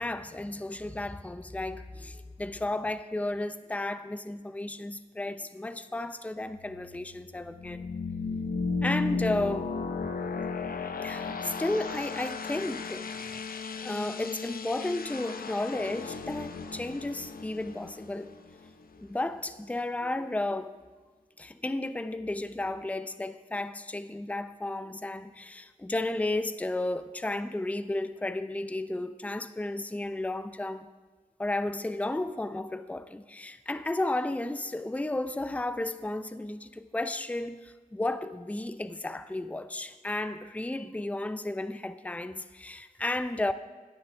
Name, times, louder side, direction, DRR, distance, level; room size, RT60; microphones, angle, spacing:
voice 1, 0.0-7.9 8.8-9.7 10.9-13.4 13.8-18.3 19.0-20.7 21.4-30.9 31.4-43.5, left 2 dB, 10° left, 0.6 m, -33 dB
sound 1, 6.5-19.1, left 4 dB, 65° left, 0.8 m, -35 dB
17.0 x 10.5 x 3.4 m
cardioid pair, 55°, 16 cm